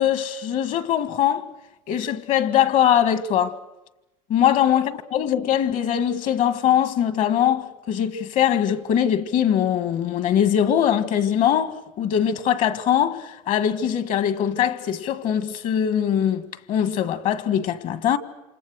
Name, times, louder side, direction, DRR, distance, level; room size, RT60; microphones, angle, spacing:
voice 1, 0.0-1.5 1.9-3.6 4.3-18.2, left 9 dB, 50° left, 1.8 m, -22 dB
28.5 x 27.0 x 6.5 m
supercardioid pair, 125°, 17 cm